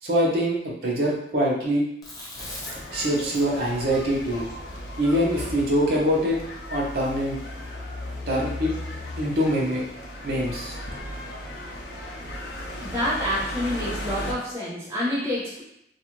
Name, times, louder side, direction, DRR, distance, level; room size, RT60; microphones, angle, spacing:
voice 1, 0.0-1.8 2.9-4.4 5.0-6.4 6.7-7.4 8.3-8.7 9.2-9.8 10.2-10.8, equal, 55° right, -3 dB, 0.7 m, -24 dB
Chewing mastication, 2.0-6.4, left 1 dB, 20° left, 0.5 m, -42 dB
sound 1, 2.3-14.3, left 1 dB, 70° left, 0.5 m, -36 dB
voice 2, 12.8-15.6, left 1 dB, 15° right, -9 dB, 1.0 m, -28 dB
2.4 x 2.4 x 2.9 m, 0.78 s
head